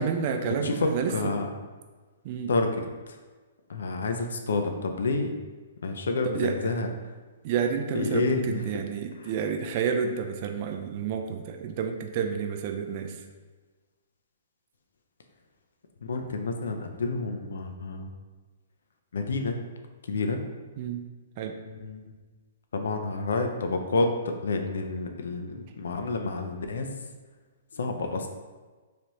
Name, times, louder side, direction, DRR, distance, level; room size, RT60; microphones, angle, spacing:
voice 1, 0.0-1.1 2.2-2.5 6.2-6.5 7.4-13.1 20.8-21.0 21.4-21.6, right 7 dB, 45° right, 4 dB, 0.4 m, -30 dB
voice 2, 0.6-1.5 2.5-2.7 3.1-3.2 3.7-5.3 5.8-6.9 7.9-8.8 9.2-9.3 16.0-18.1 19.1-19.6 20.1-20.4 21.6-22.2 22.7-26.9 27.7-28.3, left 3 dB, 70° left, 5 dB, 0.4 m, -29 dB
3.1 x 2.5 x 3.0 m, 1.3 s
figure-of-eight pair, 120°, 0 cm